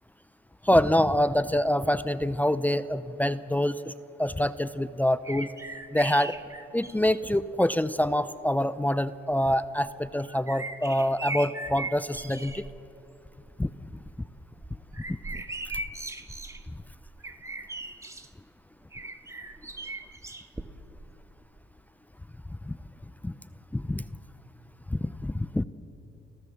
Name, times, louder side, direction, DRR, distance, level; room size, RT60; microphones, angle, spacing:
voice 1, 0.6-3.9 4.2-5.5 5.9-6.3 6.7-12.6 13.6-13.7 15.1-15.2 22.6-22.8 23.2-23.3 23.7-24.0 24.9-25.6, left 1 dB, 10° left, 14 dB, 0.5 m, -26 dB
sound 1, 5.2-7.3 8.2-8.3 9.8-12.7 13.1-13.5 13.9-18.3 18.9-21.1 21.3-21.4, right 2 dB, 15° right, 1.2 m, -39 dB
30.0 x 14.5 x 7.2 m, 2.8 s
cardioid pair, 90°, 20 cm